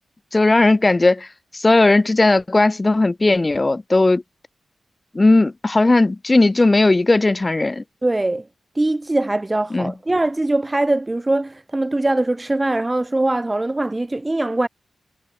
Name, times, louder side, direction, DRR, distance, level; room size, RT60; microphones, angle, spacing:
voice 1, 0.3-1.3 1.5-4.2 5.1-7.8 9.7-9.9, left 2 dB, 30° left, 1.6 m, -16 dB
voice 2, 8.0-8.5 8.8-14.7, right 2 dB, 25° right, 1.8 m, -21 dB
cardioid pair, 45°, 0 cm